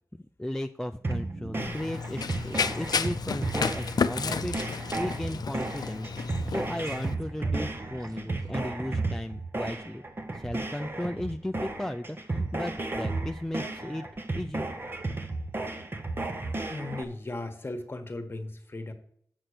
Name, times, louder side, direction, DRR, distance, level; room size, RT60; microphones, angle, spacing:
voice 1, 0.4-6.1 6.5-10.0 10.3-14.0 14.3-14.7, left 1 dB, 5° left, 5 dB, 0.4 m, -35 dB
sound 1, 1.0-17.0, right 2 dB, 35° right, 0.9 m, -34 dB
sound 2, 1.1-8.5, right 3 dB, 65° right, 1.0 m, -46 dB
Run, 1.6-7.1, left 6 dB, 75° left, 0.5 m, -32 dB
voice 2, 16.7-18.9, left 2 dB, 35° left, 7 dB, 1.3 m, -37 dB
7.9 x 5.8 x 6.4 m, 0.66 s
wide cardioid pair, 105°, 7 cm